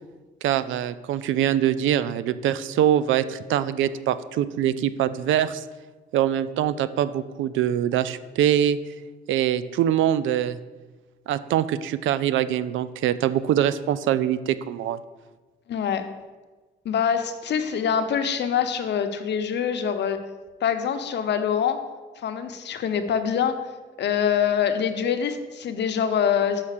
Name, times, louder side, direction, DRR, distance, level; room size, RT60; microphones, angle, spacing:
voice 1, 0.4-5.6 6.1-8.8 9.3-10.6 11.3-15.0, right 11 dB, 75° right, 15 dB, 0.5 m, -23 dB
voice 2, 15.7-16.1 16.8-20.2 20.6-21.8 22.2-23.6 24.0-26.6, left 8 dB, 60° left, 8 dB, 0.8 m, -24 dB
5.8 x 5.7 x 6.6 m, 1.3 s
cardioid pair, 90°, 20 cm